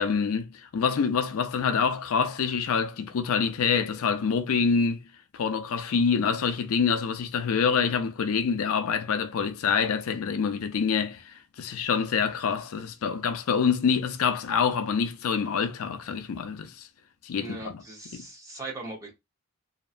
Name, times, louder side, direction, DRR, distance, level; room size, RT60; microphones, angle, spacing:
voice 1, 0.0-5.0 5.3-16.9 17.2-17.8 18.1-18.3, left 6 dB, 75° left, 0.4 m, -26 dB
voice 2, 17.3-19.1, right 2 dB, 15° right, 0.7 m, -40 dB
2.7 x 2.2 x 2.4 m
head